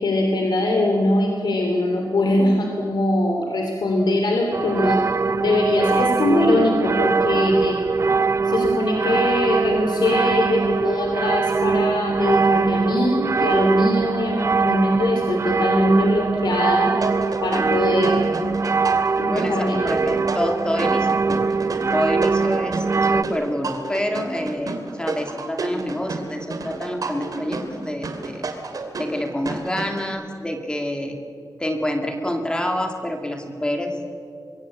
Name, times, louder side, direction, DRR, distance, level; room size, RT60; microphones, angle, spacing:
voice 1, 0.0-5.0 5.4-7.8 8.4-17.0 17.4-18.2 19.2-19.8, left 1 dB, 80° left, 2 dB, 3.0 m, -22 dB
sound 1, 4.5-23.2, right 4 dB, 40° right, 0.5 m, -22 dB
sound 2, 17.0-30.1, right 3 dB, 55° right, 2.6 m, -31 dB
voice 2, 19.3-21.5 21.9-28.5 29.0-31.1 31.6-34.0, equal, 10° left, 4 dB, 2.2 m, -27 dB
24.5 x 21.5 x 8.5 m, 2.5 s
wide cardioid pair, 170°, 7 cm